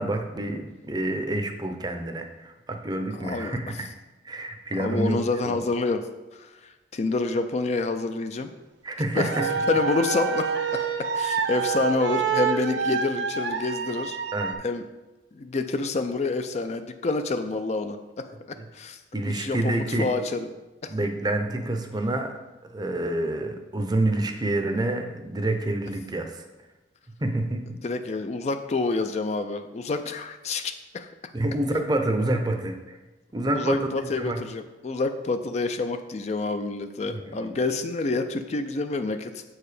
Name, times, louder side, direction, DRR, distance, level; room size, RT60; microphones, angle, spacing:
voice 1, 0.0-3.9 4.2-5.2 5.5-5.6 8.8-9.5 14.3-14.5 19.1-20.1 20.9-22.3 22.6-26.5 27.2-27.8 31.3-33.0 33.3-33.8 34.2-34.4 37.1-37.5, right 1 dB, 20° right, 5 dB, 0.6 m, -28 dB
voice 2, 3.2-3.8 4.8-6.0 6.3-8.5 9.1-9.3 9.7-14.2 14.6-14.8 15.3-18.3 18.7-19.0 19.3-20.5 20.8-20.9 27.8-31.1 33.5-39.4, left 3 dB, 35° left, 8 dB, 0.4 m, -28 dB
sound 1, 9.1-14.5, right 5 dB, 75° right, 0.7 m, -27 dB
7.4 x 4.8 x 4.9 m, 1.1 s
head